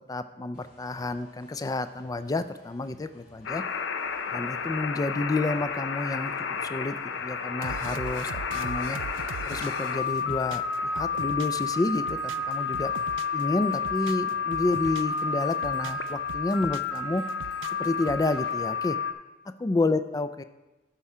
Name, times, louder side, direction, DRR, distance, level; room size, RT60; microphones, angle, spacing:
voice 1, 0.1-3.6 4.3-6.3 6.7-7.0 7.2-9.0 9.5-12.9 13.3-17.2 17.8-19.0 19.6-20.4, left 2 dB, 20° left, 12 dB, 0.3 m, -29 dB
sound 1, 0.5-18.8, left 1 dB, 50° left, 2.9 m, -56 dB
sound 2, 3.5-19.1, left 5 dB, 75° left, 0.6 m, -31 dB
sound 3, 7.6-11.7 12.0-13.4 13.7-15.2 15.5-17.0 17.3-18.3, right 7 dB, 90° right, 0.3 m, -41 dB
12.5 x 4.3 x 4.8 m, 1.1 s
head